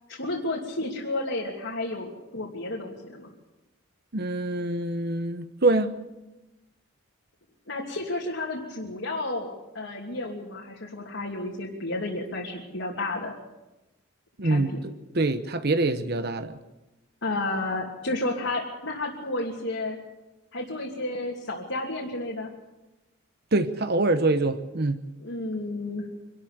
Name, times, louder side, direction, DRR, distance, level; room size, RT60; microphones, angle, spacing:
voice 1, 0.1-3.3 7.7-13.3 14.4-14.7 17.2-20.0 20.5-22.5 25.2-26.0, left 2 dB, 65° left, -3 dB, 2.9 m, -31 dB
voice 2, 4.1-5.9 14.4-16.6 23.5-25.0, right 2 dB, 50° right, 10 dB, 1.1 m, -25 dB
25.0 x 12.5 x 8.2 m, 1.0 s
head